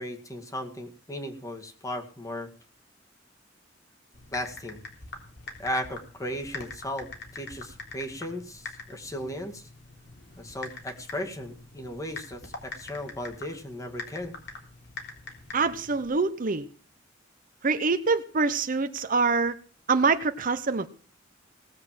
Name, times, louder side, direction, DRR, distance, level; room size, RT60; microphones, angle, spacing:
voice 1, 0.0-2.5 4.3-4.8 5.6-9.7 10.4-14.4, left 1 dB, 20° left, 4 dB, 2.0 m, -36 dB
Typing, 4.1-16.1, left 3 dB, 60° left, 3.5 m, -44 dB
voice 2, 15.5-16.7 17.6-19.5 19.9-20.9, right 4 dB, 45° right, 10 dB, 0.8 m, -25 dB
18.5 x 6.7 x 7.5 m, 0.40 s
head